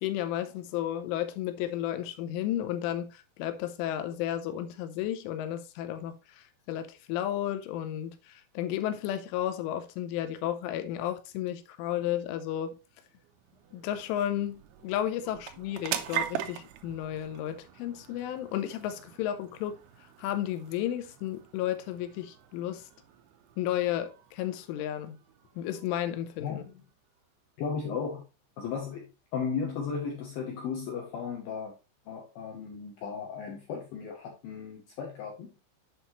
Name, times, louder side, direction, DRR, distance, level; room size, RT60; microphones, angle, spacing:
voice 1, 0.0-12.8 13.7-19.8 20.2-22.9 23.6-25.2 25.6-26.6, left 11 dB, 90° left, 3.3 m, -33 dB
sound 1, 12.5-27.3, right 11 dB, 90° right, 2.3 m, -43 dB
voice 2, 26.4-26.7 27.6-28.2 28.6-29.1 29.3-31.7 32.1-35.5, left 6 dB, 75° left, 2.2 m, -35 dB
8.1 x 5.7 x 3.1 m
omnidirectional pair, 5.5 m